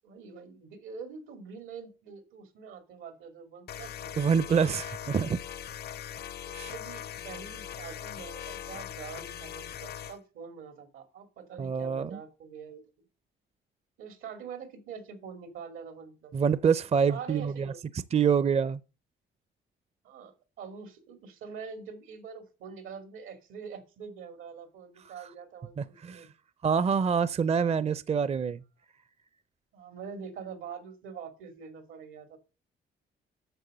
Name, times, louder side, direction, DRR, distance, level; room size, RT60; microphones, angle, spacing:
voice 1, 0.0-4.2 4.4-4.7 6.5-12.8 14.0-16.3 17.1-17.8 20.0-26.3 27.7-27.9 29.7-32.4, right 6 dB, 85° right, 2.5 m, -44 dB
sound 1, 3.7-10.2, left 10 dB, 55° left, 0.5 m, -40 dB
voice 2, 4.2-5.4 6.5-6.7 11.6-12.2 16.3-17.7 18.1-18.8 25.8-26.3 26.6-28.6, right 6 dB, 30° right, 0.5 m, -26 dB
9.0 x 6.7 x 6.6 m
cardioid pair, 90°, 20 cm